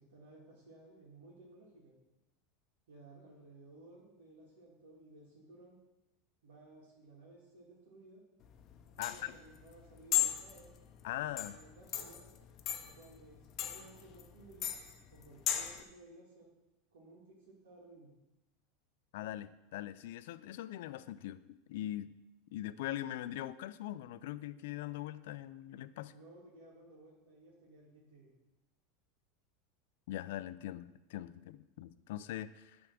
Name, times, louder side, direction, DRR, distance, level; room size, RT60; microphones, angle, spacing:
voice 1, 0.0-1.9 2.9-5.8 6.4-8.2 9.0-10.7 11.4-12.2 12.8-14.7 15.1-16.5 16.9-18.1 26.1-28.3, right 2 dB, 85° right, -6 dB, 1.8 m, -57 dB
sound 1, 8.4-15.8, left 12 dB, 45° left, 0.7 m, -37 dB
voice 2, 9.0-9.3 11.0-11.6 19.1-21.4 21.7-22.1 22.5-26.1 30.1-32.8, left 13 dB, 75° left, 15 dB, 0.3 m, -41 dB
8.8 x 3.5 x 6.3 m, 0.98 s
supercardioid pair, 120°, 0 cm